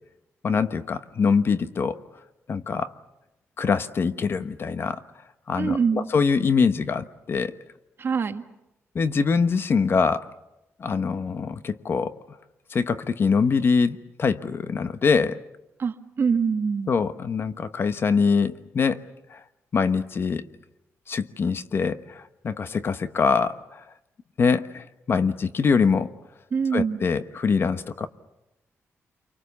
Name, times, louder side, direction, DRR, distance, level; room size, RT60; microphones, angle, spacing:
voice 1, 0.4-2.0 2.5-2.9 3.6-5.0 5.5-7.5 8.9-10.3 10.8-12.2 12.7-15.4 16.9-19.0 19.3-19.4 19.7-20.4 21.1-23.8 24.4-26.1 26.7-28.1, left 5 dB, 45° left, 12 dB, 1.1 m, -24 dB
voice 2, 5.6-6.0 8.0-8.4 15.8-16.9 26.5-27.0, right 6 dB, 45° right, 7 dB, 1.7 m, -24 dB
29.5 x 24.5 x 7.0 m, 0.91 s
cardioid pair, 105°, 5 cm